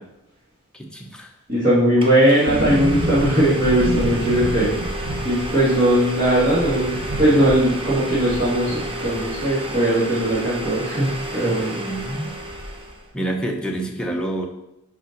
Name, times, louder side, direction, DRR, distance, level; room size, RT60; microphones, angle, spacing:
voice 1, 0.7-1.3 11.4-12.3 13.1-14.5, right 1 dB, 5° left, 0 dB, 0.8 m, -28 dB
Domestic sounds home sounds, 1.5-1.6 2.0-13.1, right 1 dB, 25° right, 0.9 m, -32 dB
voice 2, 1.5-4.7 5.2-11.8, right 1 dB, 40° right, -11 dB, 2.1 m, -19 dB
sound 1, 2.5-11.3 11.6-11.7 11.9-13.0 13.2-13.3, right 1 dB, 65° right, 1.1 m, -30 dB
5.4 x 5.1 x 5.2 m, 0.88 s
head